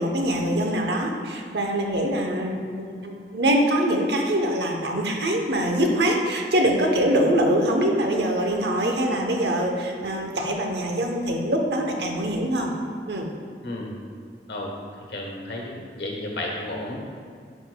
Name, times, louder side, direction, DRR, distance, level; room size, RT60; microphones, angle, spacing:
voice 1, 0.0-12.7 13.1-13.3, right 1 dB, 70° right, 2 dB, 0.8 m, -24 dB
voice 2, 13.6-13.9 14.5-14.7 15.1-17.0, left 1 dB, 65° left, -1 dB, 1.1 m, -32 dB
9.7 x 5.2 x 2.2 m, 2.2 s
head